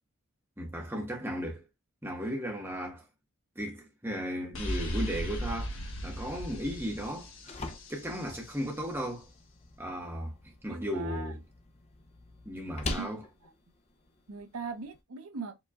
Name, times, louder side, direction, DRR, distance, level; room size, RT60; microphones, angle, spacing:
voice 1, 0.6-1.6 2.0-3.0 3.5-5.8 6.0-7.6 7.9-9.3 9.8-10.3 10.6-11.4 12.4-13.2, equal, 10° right, 1.4 m, -35 dB
sound 1, 4.5-8.3, equal, 60° left, 1.4 m, -36 dB
sound 2, 7.0-15.0, left 2 dB, 30° left, 0.7 m, -44 dB
voice 2, 10.7-11.3 12.9-13.5 14.3-15.6, right 4 dB, 85° right, 0.8 m, -41 dB
4.9 x 3.5 x 2.3 m
head